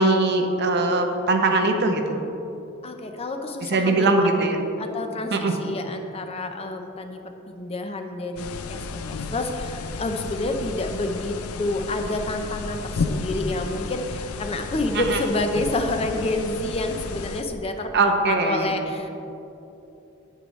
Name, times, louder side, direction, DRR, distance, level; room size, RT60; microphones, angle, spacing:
voice 1, 0.0-2.2 3.7-4.6 5.3-5.5 14.9-15.2 17.9-18.7, right 2 dB, 50° right, 4 dB, 0.7 m, -21 dB
voice 2, 2.8-4.3 4.8-19.1, left 2 dB, 30° left, 5 dB, 0.5 m, -29 dB
sound 1, 8.4-17.4, left 3 dB, 85° left, 0.5 m, -32 dB
9.3 x 8.5 x 3.1 m, 2.9 s
head